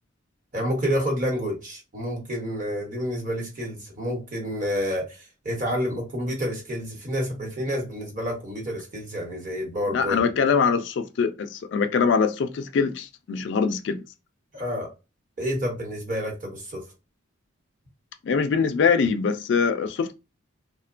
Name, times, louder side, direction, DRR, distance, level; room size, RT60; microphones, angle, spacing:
voice 1, 0.5-10.2 14.5-14.9 15.4-16.8, equal, 40° right, 0.9 m, -29 dB
voice 2, 9.9-14.0 18.2-20.1, left 5 dB, 60° left, 0.3 m, -23 dB
2.9 x 2.1 x 2.4 m
head